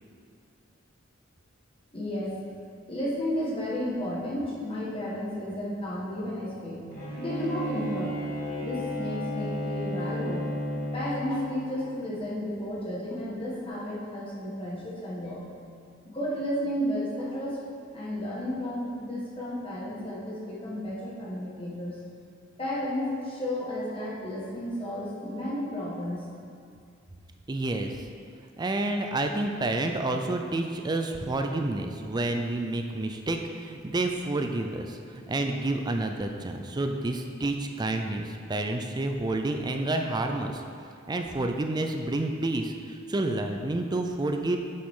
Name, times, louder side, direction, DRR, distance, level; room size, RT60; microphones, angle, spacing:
voice 1, 1.9-2.3 2.9-6.9 7.2-8.1 8.6-10.4 10.9-15.4 16.0-17.6 17.9-22.0 22.6-26.2, left 1 dB, 30° left, -6 dB, 1.6 m, -32 dB
Bowed string instrument, 6.9-11.6, equal, 50° left, 1.7 m, -33 dB
voice 2, 27.5-28.1 28.6-40.6 41.1-44.6, right 2 dB, 20° right, 5 dB, 0.4 m, -29 dB
7.8 x 7.1 x 3.7 m, 2.3 s
head